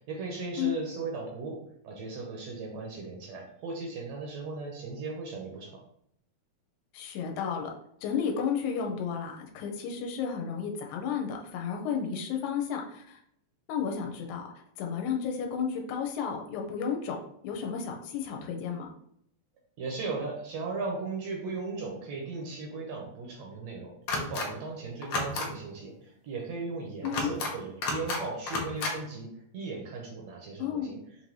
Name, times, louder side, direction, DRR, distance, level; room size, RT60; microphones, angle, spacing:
voice 1, 0.0-1.6 1.8-5.8 19.8-31.0, right 3 dB, 70° right, 0 dB, 1.7 m, -37 dB
voice 2, 6.9-7.7 8.0-13.2 13.7-18.9 27.0-27.3 30.6-31.0, left 7 dB, 90° left, 2 dB, 2.1 m, -32 dB
sound 1, 24.1-24.5 25.0-25.5 27.0-27.5 27.8-28.2 28.5-28.9, left 3 dB, 70° left, 1.5 m, -31 dB
5.4 x 2.6 x 3.1 m, 0.72 s
omnidirectional pair, 3.5 m